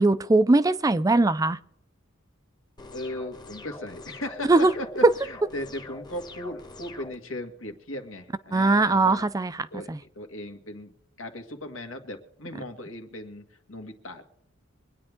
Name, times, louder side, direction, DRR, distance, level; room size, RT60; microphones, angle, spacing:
voice 1, 0.0-1.6 4.5-4.7 8.5-9.5 9.9-10.0, right 2 dB, 15° right, 0.4 m, -20 dB
sound 1, 2.8-7.2, left 2 dB, 20° left, 1.0 m, -44 dB
voice 2, 2.9-9.3 9.7-10.9 11.2-14.2, left 1 dB, 85° left, 1.9 m, -37 dB
24.0 x 9.7 x 3.6 m
head